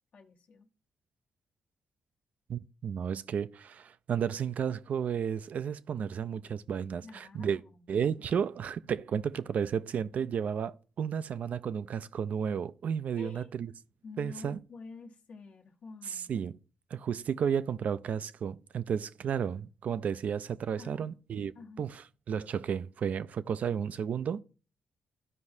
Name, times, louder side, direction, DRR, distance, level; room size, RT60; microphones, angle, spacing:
voice 1, 0.1-0.7 7.0-7.9 13.1-13.5 14.0-16.3 20.8-21.1 21.5-21.9, left 4 dB, 65° left, 1.2 m, -49 dB
voice 2, 2.5-7.6 7.9-13.7 14.2-14.6 16.1-16.6 16.9-21.5 21.8-24.4, right 7 dB, 65° right, 0.4 m, -33 dB
13.5 x 4.8 x 2.6 m
cardioid pair, 65°, 3 cm